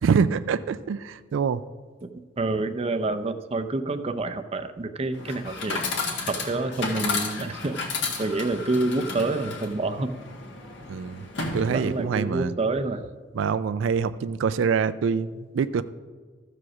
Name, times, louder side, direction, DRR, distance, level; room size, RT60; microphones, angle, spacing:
voice 1, 0.0-1.6 10.9-11.2 11.5-12.5 13.3-15.8, right 6 dB, 85° right, 13 dB, 0.3 m, -25 dB
voice 2, 2.4-5.8 6.2-10.1 11.7-13.0, right 2 dB, 30° right, 8 dB, 0.5 m, -28 dB
Chatter / Coin (dropping), 5.1-12.2, left 4 dB, 70° left, 1.7 m, -33 dB
14.0 x 4.9 x 6.0 m, 1.5 s
head